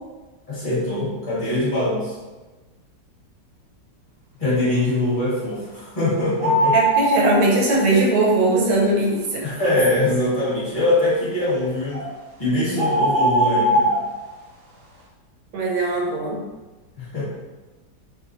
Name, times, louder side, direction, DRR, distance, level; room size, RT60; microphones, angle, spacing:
voice 1, 0.5-2.1 4.4-6.8 9.4-12.0 12.4-13.9 17.0-17.3, left 1 dB, 30° left, -9 dB, 1.4 m, -22 dB
sound 1, 6.4-7.3 11.9-12.1 12.8-14.0, right 1 dB, 85° right, 1.4 m, -19 dB
voice 2, 6.7-9.5 15.5-16.4, right 2 dB, 65° right, -3 dB, 1.0 m, -19 dB
3.6 x 2.3 x 2.6 m, 1.2 s
omnidirectional pair, 2.0 m